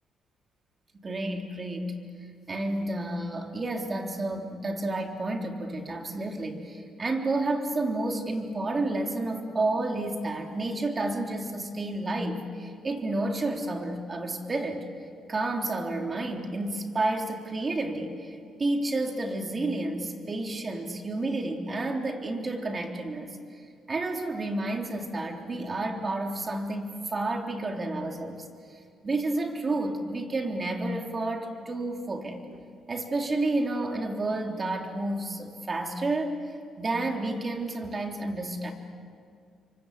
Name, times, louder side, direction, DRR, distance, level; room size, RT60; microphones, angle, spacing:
voice 1, 0.9-2.0 2.5-14.9 15.3-23.4 23.9-28.5 29.0-32.4 32.9-36.5 36.8-38.7, right 2 dB, 35° right, 3 dB, 3.4 m, -30 dB
29.0 x 24.5 x 8.3 m, 2.3 s
cardioid pair, 90°, 0 cm